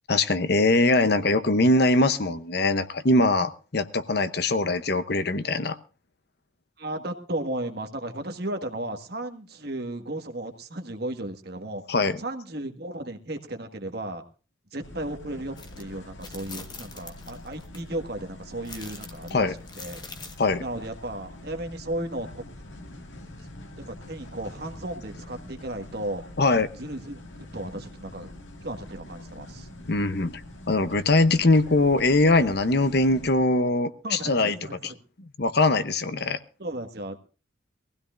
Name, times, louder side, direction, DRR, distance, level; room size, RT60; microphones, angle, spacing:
voice 1, 0.1-5.8 11.9-12.2 19.3-19.5 20.4-20.6 26.4-26.7 29.9-30.4 30.7-34.6 34.8-34.9 35.4-36.4, left 2 dB, 50° left, 12 dB, 0.8 m, -22 dB
voice 2, 6.8-11.8 12.2-14.2 14.7-20.0 20.6-22.4 23.8-26.2 26.8-28.3 28.6-29.7 34.0-35.0 36.6-37.2, right 1 dB, 50° right, 6 dB, 1.7 m, -35 dB
sound 1, 14.8-33.3, left 1 dB, 70° left, 1.9 m, -45 dB
sound 2, 15.6-15.8 16.2-17.8 18.6-20.5, left 4 dB, 20° left, 1.3 m, -43 dB
22.5 x 15.5 x 2.5 m, 0.35 s
head